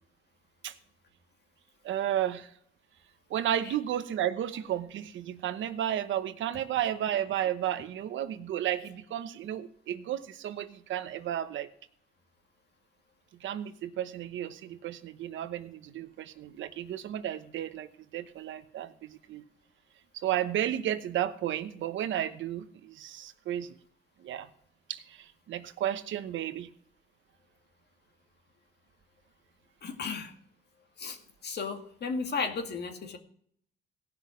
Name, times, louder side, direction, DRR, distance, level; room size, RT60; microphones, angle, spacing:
voice 1, 1.8-2.5 3.3-11.7 13.4-19.4 20.1-23.8 24.2-24.5 24.9-26.7, right 11 dB, 75° right, 0.9 m, -33 dB
voice 2, 29.8-30.3 31.0-31.2 31.4-33.2, left 4 dB, 55° left, 2.0 m, -34 dB
17.5 x 5.9 x 5.1 m
cardioid pair, 90°, 20 cm